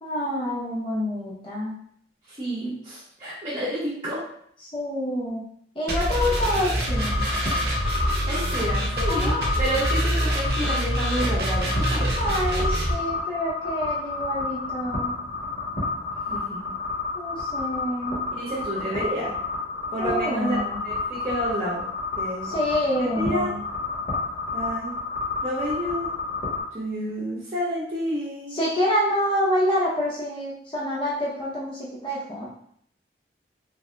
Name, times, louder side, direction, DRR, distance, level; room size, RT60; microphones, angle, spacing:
voice 1, 0.0-1.8 4.7-5.5 5.8-7.2 9.1-9.5 12.2-15.2 17.1-18.2 20.0-20.8 22.4-23.6 28.5-32.5, left 1 dB, 30° left, -7 dB, 0.7 m, -27 dB
voice 2, 2.3-4.2 8.3-12.3 16.3-16.7 18.3-19.3 19.9-20.6 20.8-21.9 22.2-22.6 23.0-23.5 24.5-25.0 25.4-26.1 26.7-28.6, right 1 dB, 30° right, -8 dB, 0.8 m, -30 dB
sound 1, 5.9-12.9, equal, 60° right, 0.7 m, -25 dB
sound 2, 6.9-26.6, left 3 dB, 50° left, 1.0 m, -30 dB
3.5 x 2.7 x 2.2 m, 0.67 s
head